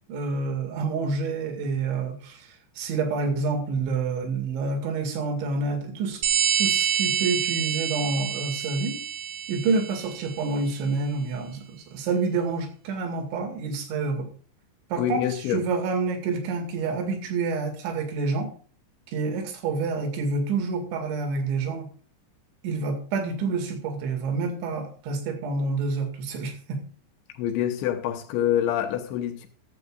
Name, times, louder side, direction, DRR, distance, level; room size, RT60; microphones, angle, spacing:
voice 1, 0.1-6.2 6.6-9.0 9.5-14.3 14.9-18.5 19.1-21.9 22.6-26.8, right 4 dB, 80° right, 4.4 m, -28 dB
sound 1, 6.2-10.5, right 9 dB, 55° right, 2.5 m, -27 dB
voice 2, 15.0-15.6 27.4-29.5, left 11 dB, 85° left, 3.3 m, -26 dB
14.5 x 13.5 x 2.4 m
omnidirectional pair, 5.3 m